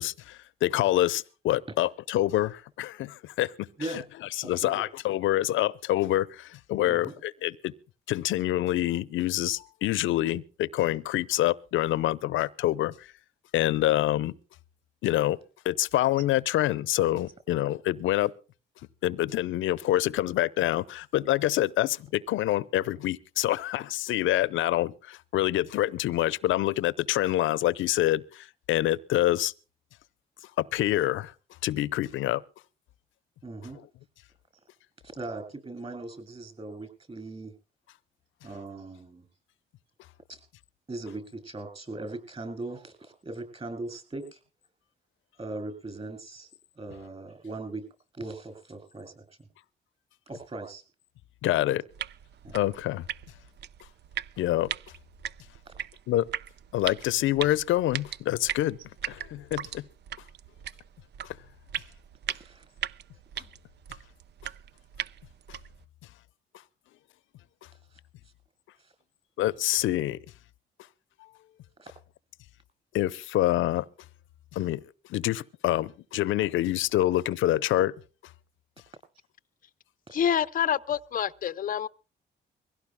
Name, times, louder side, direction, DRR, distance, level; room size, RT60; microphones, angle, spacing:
voice 1, 0.0-3.7 3.9-4.0 4.3-7.7 8.1-13.1 13.5-14.3 15.0-15.4 15.6-18.3 19.0-29.5 30.6-31.3 31.6-32.4 51.4-51.8 52.5-53.0 54.4-54.7 56.1-56.3 56.7-58.8 59.1-59.9 61.2-61.4 69.4-70.2 72.9-73.9 74.5-74.8 75.1-77.9, left 14 dB, 80° left, 0.7 m, -26 dB
voice 2, 4.4-4.8 6.8-7.1 33.4-33.8 35.0-37.5 38.4-39.3 40.3-40.4 40.9-44.4 45.4-46.5 46.8-47.8 48.1-49.5 50.3-50.8 52.4-52.6 55.7-55.8 62.3-62.7 63.4-63.5 67.9-68.0 68.8-68.9 71.8-71.9 80.1-80.2, right 2 dB, 30° right, 7.0 m, -39 dB
sound 1, 51.9-65.8, right 10 dB, 60° right, 0.6 m, -39 dB
voice 3, 80.1-81.9, left 9 dB, 45° left, 0.6 m, -27 dB
23.0 x 16.5 x 2.2 m
cardioid pair, 90°, 20 cm